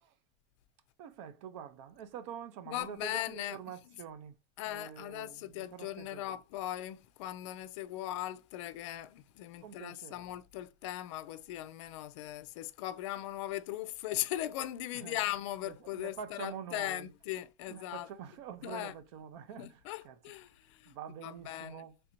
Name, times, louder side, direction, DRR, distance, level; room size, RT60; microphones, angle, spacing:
voice 1, 1.0-4.4 4.7-6.4 9.6-10.3 14.9-15.2 15.6-17.1 17.7-20.2 20.9-21.9, right 8 dB, 60° right, 0.6 m, -46 dB
voice 2, 2.6-4.0 4.6-18.1 18.6-19.0 19.6-21.0 21.2-21.9, left 14 dB, 65° left, 0.5 m, -39 dB
3.3 x 2.6 x 4.3 m
supercardioid pair, 165°, 17 cm